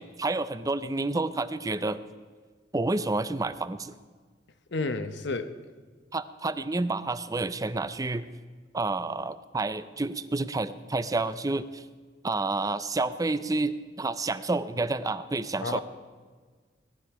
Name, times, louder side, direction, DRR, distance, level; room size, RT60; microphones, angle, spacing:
voice 1, 0.0-2.0 2.7-3.9 6.1-8.3 8.7-11.8 12.2-15.8, right 2 dB, 20° right, 14 dB, 0.5 m, -29 dB
voice 2, 4.7-5.5 15.6-15.8, left 3 dB, 70° left, 10 dB, 0.9 m, -30 dB
17.5 x 12.0 x 4.9 m, 1.5 s
head